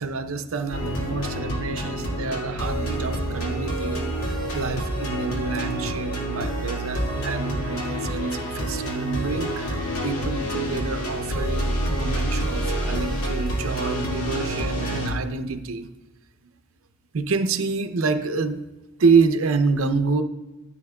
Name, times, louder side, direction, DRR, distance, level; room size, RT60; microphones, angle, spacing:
voice 1, 0.0-15.9 17.1-18.6 19.0-20.2, right 4 dB, 75° right, 9 dB, 0.6 m, -27 dB
sound 1, 0.7-15.1, right 1 dB, 90° left, 1.9 m, -28 dB
14.0 x 8.2 x 2.3 m, 1.1 s
head